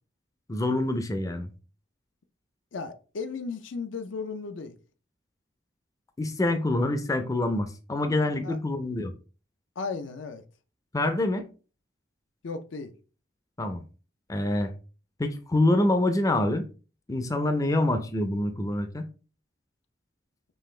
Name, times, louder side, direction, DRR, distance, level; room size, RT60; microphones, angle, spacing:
voice 1, 0.5-1.5 6.2-9.1 10.9-11.5 13.6-13.8 14.3-14.7 15.2-16.7 17.1-19.1, left 1 dB, 20° left, 0.4 m, -26 dB
voice 2, 2.7-4.8 8.4-8.6 9.8-10.4 12.4-12.9, left 4 dB, 75° left, 0.5 m, -35 dB
5.4 x 2.4 x 3.1 m
head